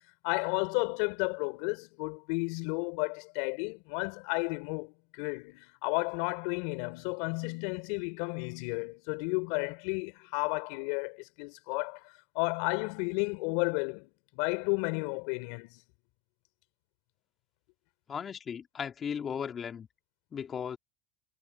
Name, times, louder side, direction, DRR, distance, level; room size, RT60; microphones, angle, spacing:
voice 1, 0.2-12.0 12.4-15.8, left 31 dB, 70° left, 5.3 m, -32 dB
voice 2, 18.1-19.9 20.3-20.8, left 7 dB, 30° left, 3.6 m, -36 dB
supercardioid pair, 105°, 0 cm